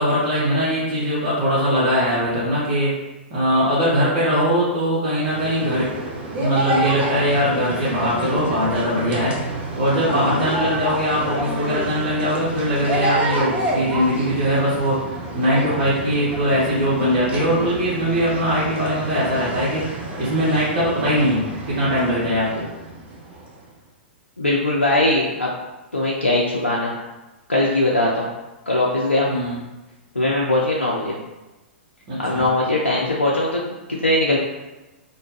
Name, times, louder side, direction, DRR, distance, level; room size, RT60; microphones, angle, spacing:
voice 1, 0.0-2.9 3.3-5.9 6.3-9.4 9.8-15.0 15.3-19.8 20.2-22.6 29.3-29.6 32.1-32.5, equal, 45° right, -9 dB, 0.9 m, -21 dB
sound 1, 5.2-23.7, right 1 dB, 20° right, 0.6 m, -29 dB
voice 2, 24.4-25.5 25.9-26.9 27.5-28.3 28.7-29.3 30.2-31.2 32.2-34.4, left 1 dB, 85° left, -4 dB, 0.4 m, -20 dB
2.6 x 2.2 x 3.1 m, 1.1 s
figure-of-eight pair, 105°, 6 cm